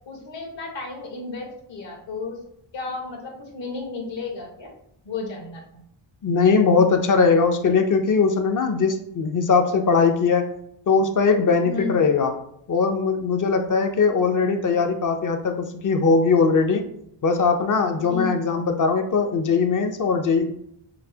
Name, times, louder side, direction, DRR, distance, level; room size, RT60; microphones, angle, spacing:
voice 1, 0.1-2.4 2.7-4.7 5.0-5.8 11.6-12.0 18.0-18.4, left 4 dB, 60° left, 0 dB, 1.3 m, -33 dB
voice 2, 6.2-10.5 10.9-12.3 12.7-16.9 17.2-20.5, left 5 dB, 40° left, 5 dB, 0.6 m, -20 dB
5.8 x 2.0 x 2.7 m, 0.73 s
wide cardioid pair, 100°, 49 cm